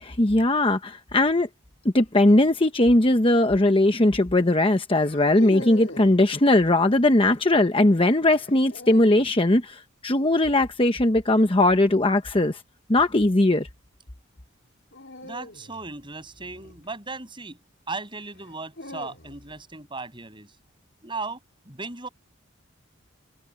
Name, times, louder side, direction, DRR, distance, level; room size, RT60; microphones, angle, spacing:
voice 1, 0.0-1.5 1.9-12.6 12.9-13.7, left 1 dB, 25° left, 1.0 m, -19 dB
sound 1, 3.1-3.4 4.9-6.2 8.3-9.3 11.7-12.1 14.9-17.3 18.3-19.6, left 1 dB, 60° left, 4.4 m, -41 dB
voice 2, 15.2-17.6 17.9-20.5 21.0-21.4 21.7-22.1, right 3 dB, 25° right, 7.0 m, -36 dB
head